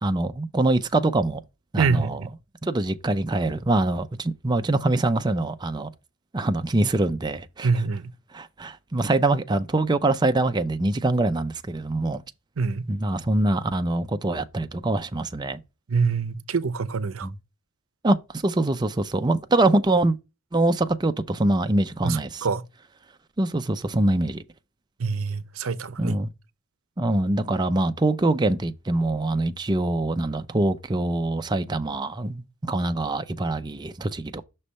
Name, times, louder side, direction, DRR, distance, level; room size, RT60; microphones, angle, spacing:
voice 1, 0.0-1.4 1.7-2.2 2.6-5.9 6.3-7.7 8.3-12.2 12.9-15.6 17.2-17.3 18.0-18.2 18.4-20.2 20.5-22.5 23.4-24.4 26.0-26.3 27.0-34.4, right 2 dB, 20° right, 0.5 m, -24 dB
voice 2, 1.8-2.3 7.6-8.1 12.6-12.9 15.9-17.3 22.0-22.6 25.0-26.1, right 4 dB, 80° right, 0.6 m, -25 dB
6.2 x 3.2 x 5.4 m
head